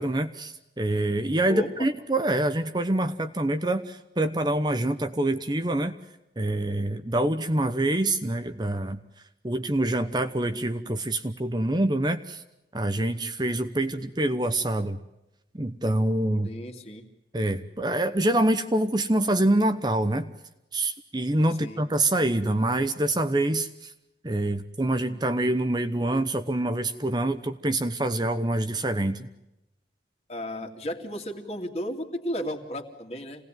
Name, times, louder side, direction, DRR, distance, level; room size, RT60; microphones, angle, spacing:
voice 1, 0.0-5.9 6.4-9.0 9.4-12.4 12.7-15.0 15.5-16.5 17.3-20.3 20.7-23.9 24.2-29.3, right 1 dB, 25° right, 8 dB, 0.9 m, -26 dB
voice 2, 16.4-17.0 21.6-21.8 30.3-33.4, equal, 35° left, 4 dB, 2.6 m, -34 dB
27.5 x 18.5 x 9.2 m, 0.90 s
head